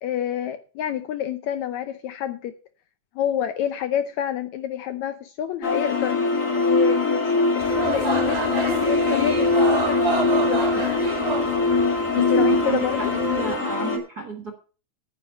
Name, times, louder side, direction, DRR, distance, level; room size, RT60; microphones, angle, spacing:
voice 1, 0.0-2.5 3.2-6.2 6.6-10.9 12.2-13.1, left 10 dB, 75° left, 10 dB, 1.8 m, -28 dB
sound 1, 5.6-14.0, left 3 dB, 30° left, 1.7 m, -22 dB
sound 2, 7.6-13.6, right 4 dB, 85° right, 0.3 m, -28 dB
voice 2, 12.1-14.5, right 6 dB, 45° right, 4 dB, 1.4 m, -30 dB
9.8 x 9.5 x 5.4 m, 0.36 s
omnidirectional pair, 3.8 m